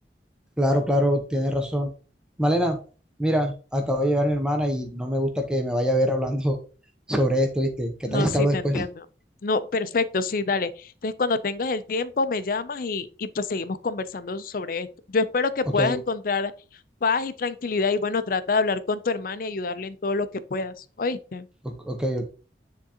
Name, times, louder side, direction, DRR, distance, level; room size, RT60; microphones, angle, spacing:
voice 1, 0.6-1.9 2.4-2.8 3.2-6.6 7.1-8.8 15.8-16.0 21.6-22.3, equal, 5° right, 0.7 m, -24 dB
voice 2, 8.1-9.1 9.4-16.5 17.0-21.5, left 4 dB, 50° left, 0.5 m, -27 dB
9.5 x 3.7 x 2.8 m
head